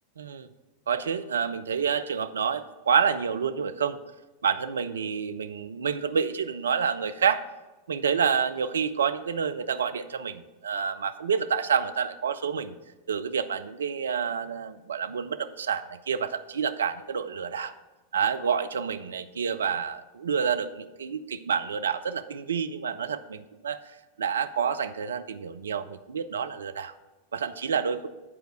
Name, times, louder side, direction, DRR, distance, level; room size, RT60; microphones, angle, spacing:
voice 1, 0.2-0.5 0.9-4.0 4.4-7.4 7.9-12.8 13.1-17.7 18.1-23.8 24.2-26.9 27.3-28.1, right 6 dB, 70° right, 10 dB, 0.4 m, -28 dB
8.6 x 4.6 x 6.3 m, 1.1 s
figure-of-eight pair, 90°, 0 cm